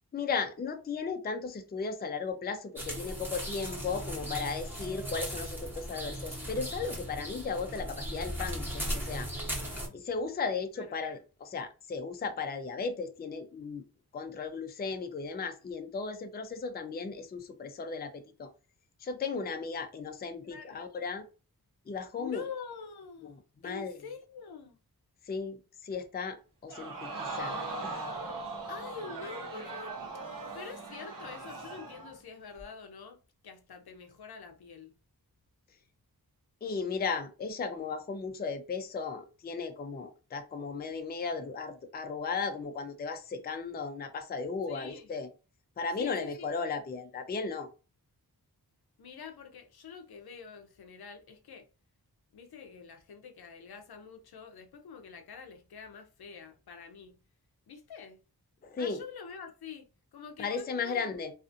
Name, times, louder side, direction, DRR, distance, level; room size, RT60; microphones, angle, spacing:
voice 1, 0.1-9.3 9.9-13.8 14.1-18.5 19.0-21.3 21.9-22.4 23.2-23.3 23.6-24.0 25.3-28.0 36.6-45.3 45.8-47.7 58.6-59.0 60.4-61.3, left 5 dB, 25° left, 0.4 m, -36 dB
sound 1, 2.8-9.9, equal, 5° right, 0.8 m, -37 dB
voice 2, 20.4-20.9 22.2-23.4 23.6-24.8 28.7-30.0 30.5-34.9 44.7-45.1 46.0-46.5 49.0-51.7 52.3-57.2 57.7-58.2 58.7-61.2, left 5 dB, 75° left, 0.5 m, -46 dB
Crowd, 26.7-32.2 32.6-32.7, right 3 dB, 60° right, 0.9 m, -39 dB
2.5 x 2.4 x 2.5 m
wide cardioid pair, 90°, 38 cm